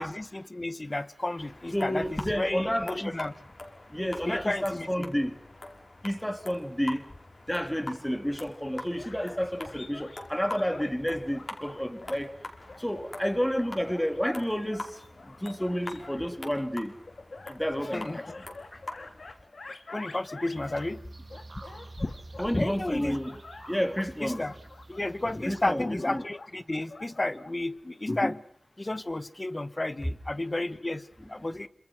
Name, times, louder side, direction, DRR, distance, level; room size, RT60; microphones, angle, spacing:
voice 1, 0.0-3.3 4.3-5.1 17.9-18.2 19.9-21.0 22.0-22.1 22.5-23.2 24.2-24.5 24.9-28.4 28.8-31.7, left 2 dB, 35° left, 1.3 m, -32 dB
sound 1, 1.4-19.3, left 2 dB, 50° left, 5.8 m, -45 dB
voice 2, 1.7-3.2 3.9-5.4 6.0-7.1 7.5-12.3 12.8-16.9 17.5-18.2 22.4-23.3 23.7-24.4 25.4-25.8 26.1-26.2 30.0-30.1 31.2-31.3, equal, 5° left, 2.9 m, -30 dB
sound 2, 9.0-10.9 11.3-12.2 12.7-16.3 17.1-20.9 21.3-22.5 22.9-27.6, left 3 dB, 80° left, 2.2 m, -47 dB
sound 3, 20.5-25.7, right 2 dB, 55° right, 3.1 m, -48 dB
28.0 x 27.0 x 6.2 m
wide cardioid pair, 70°, 0 cm